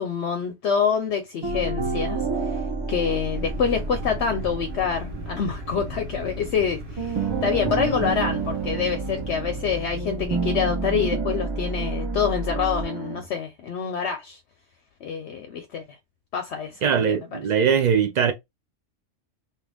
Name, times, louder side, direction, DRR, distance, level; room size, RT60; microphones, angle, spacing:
voice 1, 0.0-2.6 2.9-14.4 15.0-15.9 16.3-17.4, left 7 dB, 65° left, 0.8 m, -26 dB
sound 1, 1.4-6.7 7.0-13.2, right 4 dB, 25° right, 0.7 m, -29 dB
sound 2, 3.3-11.5, equal, 55° right, 1.2 m, -38 dB
voice 2, 16.8-18.3, right 7 dB, 75° right, 0.4 m, -21 dB
3.0 x 2.4 x 3.4 m
omnidirectional pair, 1.3 m